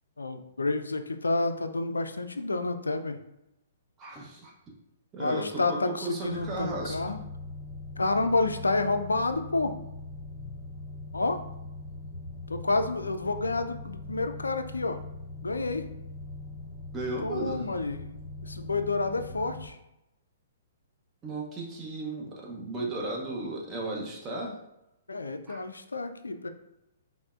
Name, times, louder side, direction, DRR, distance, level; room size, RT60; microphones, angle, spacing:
voice 1, 0.2-3.2 5.2-7.2 8.0-9.7 11.1-11.4 12.5-15.0 15.4-15.9 17.2-18.0 18.4-19.8 25.1-26.5, left 3 dB, 75° left, 8 dB, 0.3 m, -29 dB
voice 2, 4.0-4.5 5.1-7.0 16.9-17.6 21.2-24.6 25.5-25.6, right 2 dB, 20° right, -3 dB, 0.8 m, -35 dB
sound 1, 6.2-19.6, left 2 dB, 30° left, 1.3 m, -41 dB
5.4 x 2.0 x 2.4 m, 0.88 s
figure-of-eight pair, 120°, 0 cm